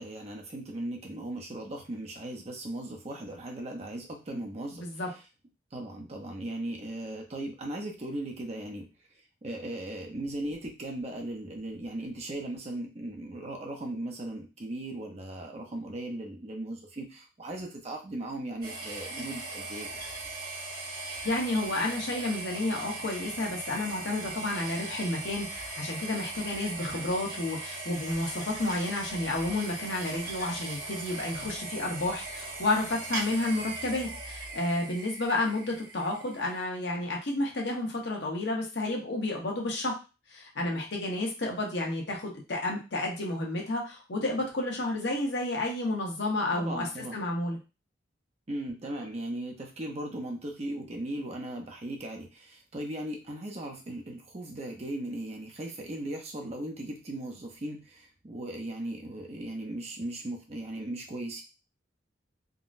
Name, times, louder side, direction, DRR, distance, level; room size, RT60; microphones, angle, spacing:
voice 1, 0.0-4.9 5.7-8.9 9.4-19.9 46.5-47.2 48.5-61.4, right 1 dB, 35° right, 1 dB, 0.6 m, -37 dB
voice 2, 4.7-5.1 21.2-40.0 40.3-46.9 47.1-47.6, left 2 dB, 70° left, 0 dB, 0.9 m, -31 dB
sound 1, 18.6-36.6, right 3 dB, 55° right, 1.3 m, -39 dB
3.7 x 2.1 x 2.5 m, 0.30 s
head